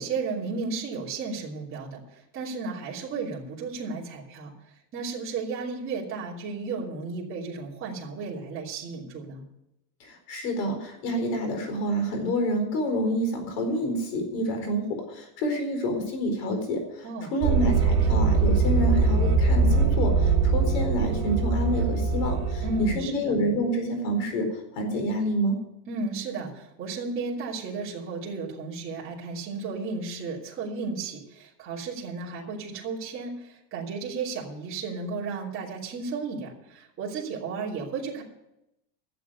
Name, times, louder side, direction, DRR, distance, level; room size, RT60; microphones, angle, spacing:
voice 1, 0.0-4.5 4.9-9.4 17.0-17.3 22.6-23.3 25.9-38.2, right 4 dB, 25° right, -6 dB, 3.0 m, -33 dB
voice 2, 10.0-25.6, equal, 75° left, 5 dB, 4.6 m, -28 dB
sound 1, 17.4-23.0, right 4 dB, 55° right, 3.5 m, -22 dB
12.0 x 7.8 x 9.3 m, 0.86 s
cardioid pair, 165°, 49 cm